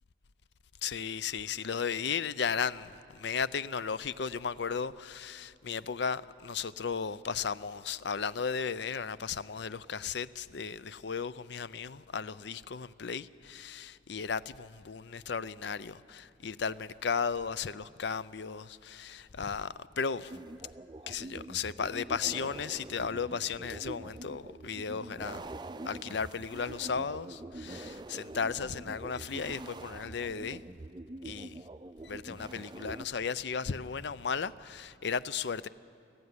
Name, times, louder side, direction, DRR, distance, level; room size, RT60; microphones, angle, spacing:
voice 1, 0.8-20.3 21.1-25.5 25.8-30.6 31.2-31.6 32.0-35.7, left 6 dB, 60° left, 0.5 m, -35 dB
sound 1, 20.3-33.1, right 2 dB, 20° right, 0.5 m, -45 dB
25.0 x 16.0 x 9.6 m
head